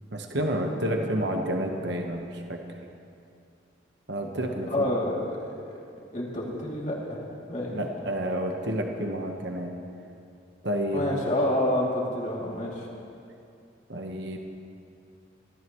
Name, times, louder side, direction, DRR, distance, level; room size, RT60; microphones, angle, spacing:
voice 1, 0.1-2.6 4.1-4.9 7.7-9.7 10.6-11.0 13.9-14.4, right 1 dB, 65° right, 2 dB, 1.2 m, -30 dB
voice 2, 4.2-5.4 5.7-5.8 6.1-7.8 10.9-12.9, left 1 dB, 40° left, -4 dB, 2.8 m, -29 dB
24.0 x 14.5 x 3.1 m, 2.5 s
head